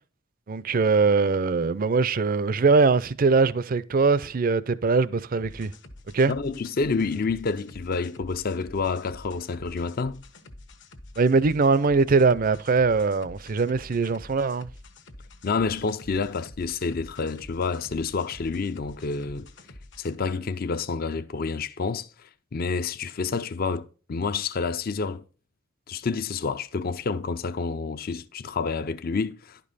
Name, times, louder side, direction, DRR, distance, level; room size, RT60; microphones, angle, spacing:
voice 1, 0.5-5.7 6.1-6.3 11.2-14.7, right 4 dB, 45° right, 0.5 m, -22 dB
sound 1, 5.4-20.1, left 1 dB, 65° left, 1.1 m, -48 dB
voice 2, 6.3-10.2 15.4-19.5 20.0-25.2 25.9-29.6, left 4 dB, 50° left, 0.5 m, -29 dB
11.0 x 5.3 x 4.0 m
head